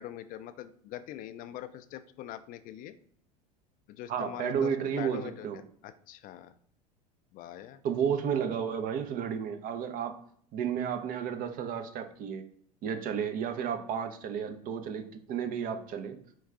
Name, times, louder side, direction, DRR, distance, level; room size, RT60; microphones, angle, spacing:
voice 1, 0.0-2.9 3.9-4.7 5.0-6.5 7.3-7.8, left 12 dB, 45° left, 11 dB, 0.4 m, -43 dB
voice 2, 4.1-5.6 7.8-10.2 10.5-12.4 12.8-16.2, right 7 dB, 45° right, 8 dB, 0.6 m, -32 dB
4.6 x 2.3 x 3.5 m, 0.62 s
hypercardioid pair, 80°, 20 cm